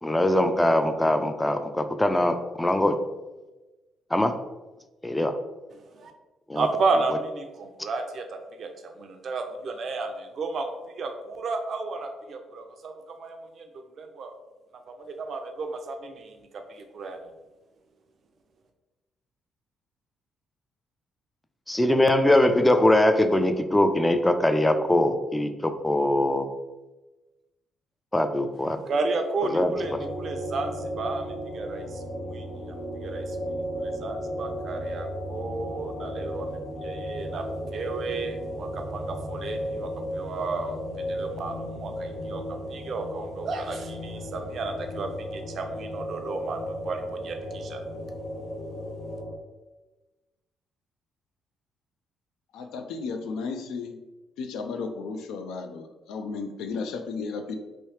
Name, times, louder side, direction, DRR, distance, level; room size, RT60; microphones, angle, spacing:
voice 1, 0.0-3.0 4.1-4.3 5.0-5.4 6.5-6.7 21.7-26.5 28.1-28.8 29.5-29.7, left 1 dB, 10° left, 8 dB, 0.3 m, -22 dB
voice 2, 5.7-6.1 6.5-13.7 14.0-14.3 14.9-17.2 28.5-33.5 33.7-47.8, right 3 dB, 55° right, 5 dB, 0.5 m, -33 dB
sound 1, 29.7-49.4, equal, 60° left, 0.8 m, -35 dB
voice 3, 52.5-54.0 54.4-57.6, left 4 dB, 90° left, 5 dB, 0.4 m, -34 dB
3.0 x 2.7 x 3.2 m, 1.1 s
cardioid pair, 90°, 0 cm